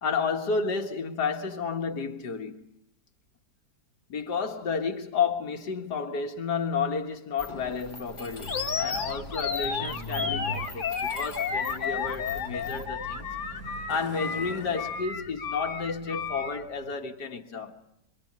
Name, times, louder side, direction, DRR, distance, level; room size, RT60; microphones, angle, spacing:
voice 1, 0.0-2.7 4.1-13.3 13.9-17.8, left 5 dB, 80° left, 2.3 m, -31 dB
Mechanisms, 7.4-12.9, left 2 dB, 20° left, 1.2 m, -45 dB
Truck, 8.2-17.0, right 2 dB, 60° right, 7.8 m, -43 dB
Animal, 8.5-16.6, left 6 dB, 50° left, 1.8 m, -32 dB
27.0 x 24.5 x 8.6 m
omnidirectional pair, 1.8 m